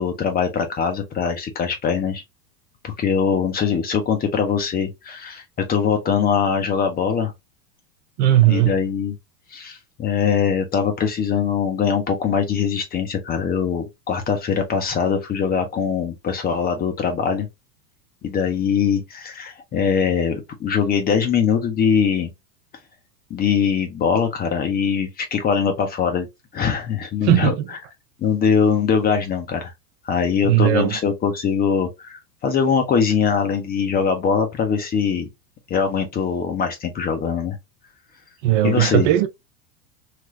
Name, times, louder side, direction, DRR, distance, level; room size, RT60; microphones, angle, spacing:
voice 1, 0.0-2.2 2.8-5.4 5.7-7.3 8.5-9.1 9.5-17.5 18.2-22.3 23.3-26.3 26.5-27.5 28.2-29.7 30.0-35.3 35.7-37.6 38.6-39.1, left 6 dB, 20° left, 0.5 m, -22 dB
voice 2, 8.2-8.7 27.2-27.6 30.4-31.0 38.4-39.3, right 13 dB, 45° right, 0.4 m, -17 dB
2.9 x 2.5 x 2.7 m
hypercardioid pair, 120°, 49 cm